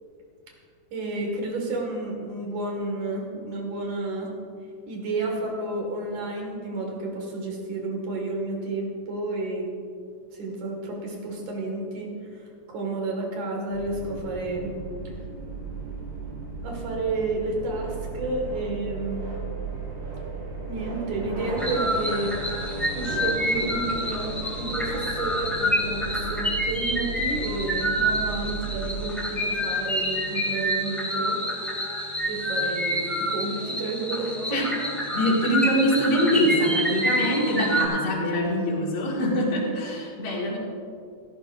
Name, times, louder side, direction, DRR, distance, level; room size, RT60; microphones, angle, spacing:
voice 1, 0.9-4.3 4.9-9.7 10.3-14.8 16.6-19.3 20.7-22.4 22.9-31.4 32.3-34.6, right 2 dB, 80° right, 0 dB, 3.6 m, -31 dB
sound 1, 13.7-29.0, right 3 dB, 50° right, 3.7 m, -35 dB
sound 2, 21.6-37.9, equal, ahead, 2.5 m, -28 dB
voice 2, 35.1-40.6, equal, 55° left, -4 dB, 3.3 m, -24 dB
16.5 x 14.0 x 2.7 m, 2.3 s
omnidirectional pair, 3.4 m